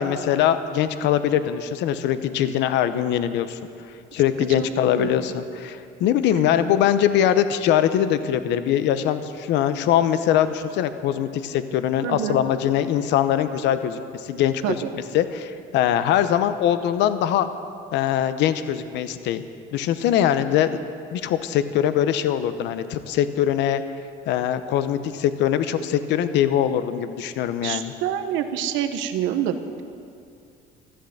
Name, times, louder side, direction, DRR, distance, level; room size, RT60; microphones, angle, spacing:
voice 1, 0.0-3.6 4.1-14.8 15.1-17.5 17.9-19.4 19.7-20.8 21.1-23.8 24.3-27.9, left 10 dB, 65° left, 11 dB, 0.8 m, -22 dB
voice 2, 4.5-5.3 12.0-12.4 14.6-14.9 27.6-29.8, right 9 dB, 85° right, 8 dB, 1.2 m, -27 dB
14.0 x 13.0 x 7.8 m, 2.4 s
cardioid pair, 170°, 19 cm